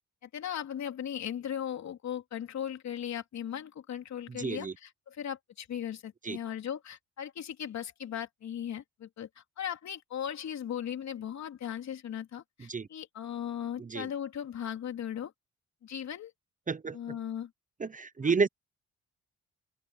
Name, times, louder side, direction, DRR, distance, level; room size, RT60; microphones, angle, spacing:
voice 1, 0.2-15.3 15.8-16.3 16.9-17.5 18.2-18.3, left 9 dB, 65° left, 3.4 m, -38 dB
voice 2, 4.3-4.7 6.2-6.4 12.7-12.9 13.8-14.1 16.7-17.2 17.8-18.5, right 4 dB, 25° right, 1.0 m, -31 dB
open air
cardioid pair, 90°, 30 cm